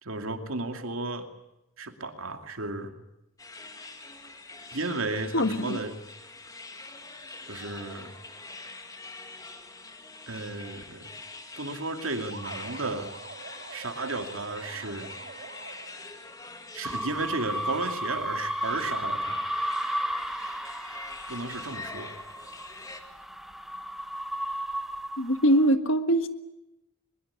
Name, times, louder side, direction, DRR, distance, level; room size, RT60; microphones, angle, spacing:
voice 1, 0.0-1.3 1.8-2.9 4.7-5.9 7.4-8.1 10.3-11.1 11.6-13.1 13.7-15.1 16.7-19.5 21.3-22.1, right 2 dB, 85° right, 2.6 m, -34 dB
sound 1, 3.4-23.0, left 3 dB, 15° left, 2.2 m, -45 dB
voice 2, 5.3-5.8 25.2-26.3, equal, 70° left, 1.8 m, -23 dB
sound 2, 12.3-16.2, right 4 dB, 55° right, 2.2 m, -45 dB
sound 3, 16.8-25.7, equal, ahead, 1.3 m, -34 dB
22.0 x 21.5 x 9.8 m
head